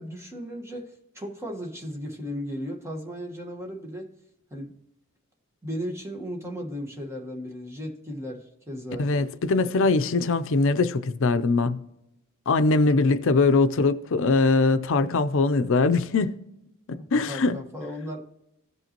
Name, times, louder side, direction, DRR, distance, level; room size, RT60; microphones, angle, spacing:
voice 1, 0.0-4.1 4.5-4.8 5.6-9.1 17.0-18.2, equal, 15° right, 1.3 m, -36 dB
voice 2, 9.0-11.8 12.5-16.4 16.9-17.6, left 3 dB, 65° left, 0.5 m, -22 dB
16.0 x 5.5 x 2.9 m
head